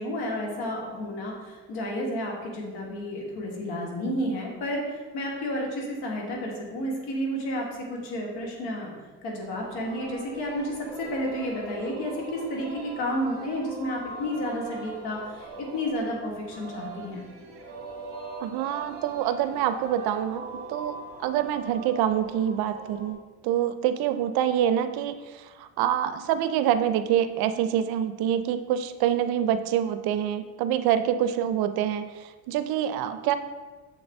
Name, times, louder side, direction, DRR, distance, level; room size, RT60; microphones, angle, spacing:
voice 1, 0.0-8.9 9.2-17.3, equal, 80° left, -1 dB, 1.7 m, -31 dB
Singing, 9.4-23.1, right 3 dB, 35° right, 1.3 m, -41 dB
voice 2, 18.4-21.0 21.2-23.2 23.4-33.4, right 10 dB, 75° right, 11 dB, 0.5 m, -26 dB
7.0 x 3.9 x 3.5 m, 1.3 s
cardioid pair, 105°, 37 cm